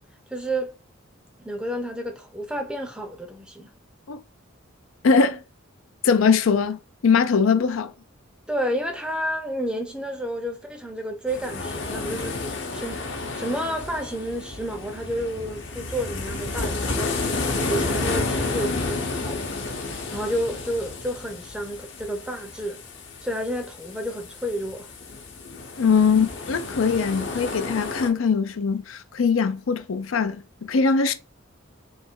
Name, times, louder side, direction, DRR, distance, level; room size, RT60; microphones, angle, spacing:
voice 1, 0.3-0.8 1.4-3.7 8.5-13.1 13.3-22.8 23.2-24.9, equal, 5° right, 0.5 m, -31 dB
voice 2, 5.0-5.4 6.0-7.9 25.8-31.1, left 5 dB, 80° left, 0.5 m, -21 dB
sound 1, 11.3-28.1, left 3 dB, 55° left, 0.9 m, -31 dB
3.4 x 3.1 x 4.5 m
head